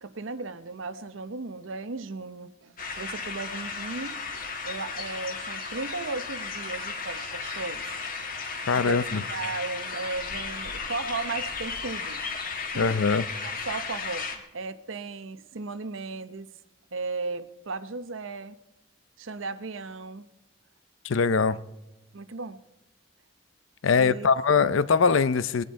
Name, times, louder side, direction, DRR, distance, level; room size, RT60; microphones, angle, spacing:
voice 1, 0.0-4.2 4.6-7.9 8.7-12.2 12.7-16.5 16.9-18.6 19.2-20.3 22.1-22.6 23.9-24.3, right 3 dB, 75° right, 0.8 m, -36 dB
sound 1, 2.8-14.4, left 4 dB, 45° left, 1.5 m, -34 dB
voice 2, 8.7-9.2 12.8-13.3 21.0-21.6 23.8-25.6, left 5 dB, 75° left, 0.5 m, -22 dB
19.0 x 10.0 x 4.5 m
head